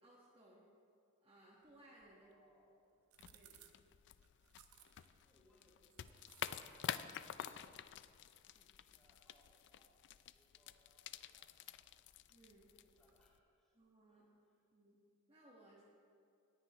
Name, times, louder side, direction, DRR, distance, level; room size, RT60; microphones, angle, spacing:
voice 1, 0.0-0.6 1.2-2.3 3.2-3.7 12.3-12.7 13.7-14.3 14.7-15.0 15.3-15.8, right 1 dB, 25° right, -6 dB, 1.3 m, -64 dB
sound 1, 1.6-13.3, right 11 dB, 75° right, 0.7 m, -71 dB
voice 2, 2.1-3.0 5.2-7.7 8.4-11.9 12.6-13.8 14.1-14.6, equal, ahead, -7 dB, 2.8 m, -75 dB
sound 2, 3.2-13.4, left 10 dB, 55° left, 0.3 m, -50 dB
18.0 x 9.8 x 3.0 m, 2.4 s
head